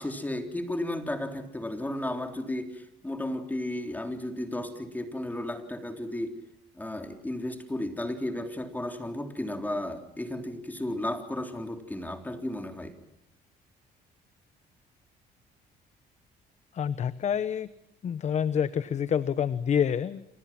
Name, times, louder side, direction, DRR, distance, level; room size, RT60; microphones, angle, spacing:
voice 1, 0.0-6.4 6.8-12.9, left 1 dB, 10° left, 6 dB, 3.6 m, -34 dB
voice 2, 16.7-17.7 18.0-20.3, left 8 dB, 45° left, 15 dB, 0.9 m, -27 dB
29.0 x 27.0 x 6.0 m, 0.78 s
cardioid pair, 110°, 17 cm